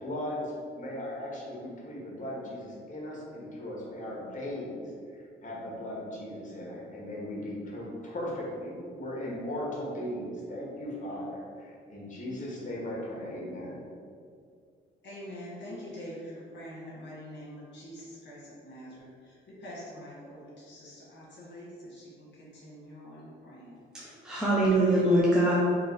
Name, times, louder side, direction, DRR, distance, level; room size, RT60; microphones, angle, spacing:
voice 1, 0.0-4.8 5.4-13.8, left 1 dB, 40° left, -4 dB, 1.2 m, -37 dB
voice 2, 15.0-23.8, equal, 65° left, -6 dB, 1.2 m, -45 dB
voice 3, 23.9-25.5, right 1 dB, 5° right, -8 dB, 0.7 m, -23 dB
3.0 x 2.9 x 3.9 m, 2.2 s
cardioid pair, 90°, 20 cm